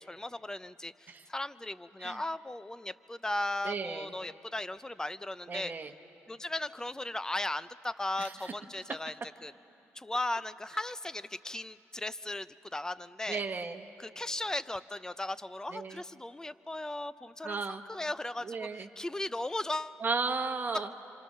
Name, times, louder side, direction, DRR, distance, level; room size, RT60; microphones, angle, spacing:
voice 1, 0.0-5.7 6.3-9.1 9.4-9.5 9.9-13.4 14.0-20.0, left 1 dB, 10° left, 15 dB, 0.6 m, -37 dB
voice 2, 3.6-4.1 5.5-5.9 8.2-8.5 13.3-13.8 15.7-16.0 17.4-17.8 18.4-18.9 20.0-20.9, right 4 dB, 35° right, 5 dB, 1.2 m, -35 dB
26.5 x 26.5 x 6.7 m, 2.7 s
cardioid pair, 90°, 5 cm